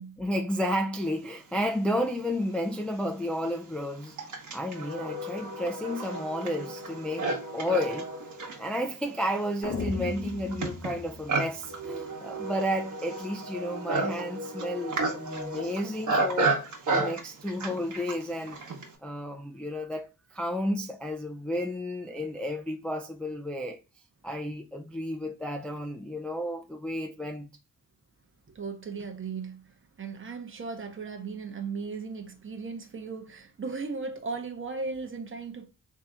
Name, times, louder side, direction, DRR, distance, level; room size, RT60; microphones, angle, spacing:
voice 1, 0.2-8.1 8.6-16.6 16.9-18.6 19.0-23.8 24.2-27.5, equal, 5° left, 0.3 m, -32 dB
Livestock farm animals working animals, 2.2-2.3 3.0-19.0, right 3 dB, 60° right, 1.1 m, -32 dB
sound 1, 9.6-11.9, left 4 dB, 50° left, 0.7 m, -36 dB
voice 2, 28.5-35.7, right 4 dB, 40° right, 0.8 m, -37 dB
3.4 x 2.8 x 3.7 m
wide cardioid pair, 110°, 33 cm